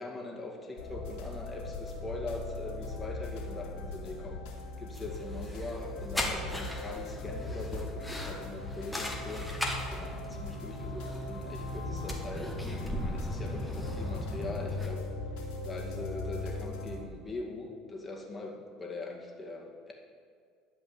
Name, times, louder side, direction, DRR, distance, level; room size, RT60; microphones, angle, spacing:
voice 1, 0.0-15.1 15.6-19.9, left 2 dB, 20° left, 0 dB, 2.2 m, -42 dB
sound 1, 0.8-17.0, left 2 dB, 85° left, 2.8 m, -39 dB
sound 2, 4.9-14.9, left 1 dB, 5° left, 1.7 m, -39 dB
12.5 x 5.3 x 8.4 m, 2.2 s
supercardioid pair, 115°, 0 cm